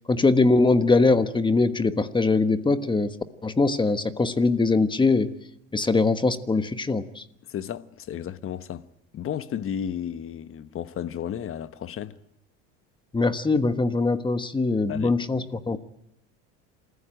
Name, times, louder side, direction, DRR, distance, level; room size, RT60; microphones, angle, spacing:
voice 1, 0.1-3.1 3.4-5.3 5.7-7.2 13.1-15.8, left 3 dB, 15° left, 1.3 m, -22 dB
voice 2, 7.5-8.9 9.1-12.2 14.9-15.2, left 9 dB, 35° left, 1.2 m, -33 dB
27.5 x 15.0 x 9.1 m
supercardioid pair, 115°, 36 cm